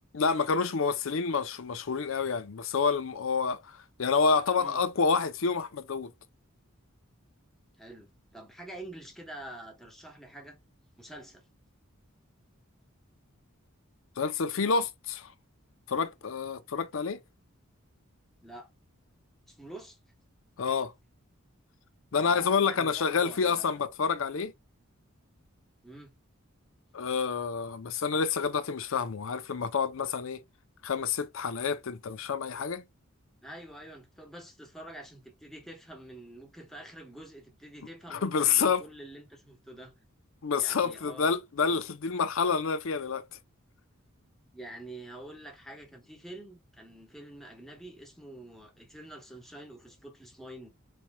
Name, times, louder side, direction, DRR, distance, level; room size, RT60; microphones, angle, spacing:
voice 1, 0.1-6.1 14.2-15.3 15.9-17.2 20.6-20.9 22.1-24.5 26.9-30.4 30.8-32.8 38.1-38.8 40.4-43.3, left 5 dB, 65° left, 0.5 m, -28 dB
voice 2, 7.8-10.6 11.0-11.4 18.4-18.7 19.5-20.0 22.1-23.8 25.8-26.1 33.4-39.9 40.5-41.3 44.5-50.7, right 1 dB, ahead, 1.0 m, -47 dB
4.2 x 3.2 x 2.2 m
head